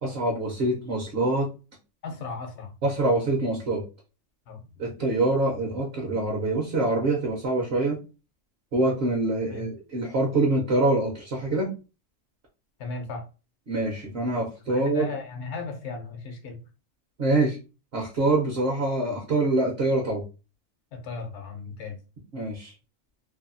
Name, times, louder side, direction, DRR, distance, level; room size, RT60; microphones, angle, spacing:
voice 1, 0.0-1.5 2.8-3.8 4.8-8.0 8.7-11.7 13.7-15.1 17.2-17.6 17.9-20.2 22.3-22.7, right 2 dB, 55° right, -1 dB, 0.8 m, -25 dB
voice 2, 2.0-2.7 4.5-4.6 9.5-9.6 12.8-13.2 14.7-16.6 20.9-22.0, left 4 dB, 65° left, 5 dB, 0.8 m, -36 dB
2.7 x 2.2 x 2.5 m, 0.32 s
omnidirectional pair, 1.4 m